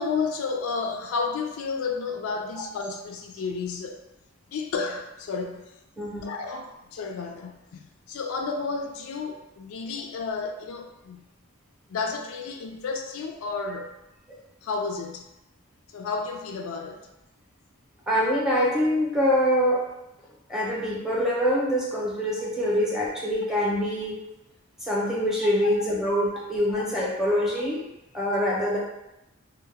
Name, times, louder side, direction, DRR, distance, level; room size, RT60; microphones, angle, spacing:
voice 1, 0.0-4.0 4.5-5.8 6.2-11.3 11.9-14.0 14.6-15.3 15.9-17.1 26.7-26.8, left 4 dB, 85° left, 4 dB, 0.3 m, -32 dB
voice 2, 18.1-19.8 20.5-24.2 24.8-27.8 28.1-28.8, equal, ahead, -6 dB, 0.5 m, -24 dB
2.2 x 2.0 x 3.3 m, 0.92 s
head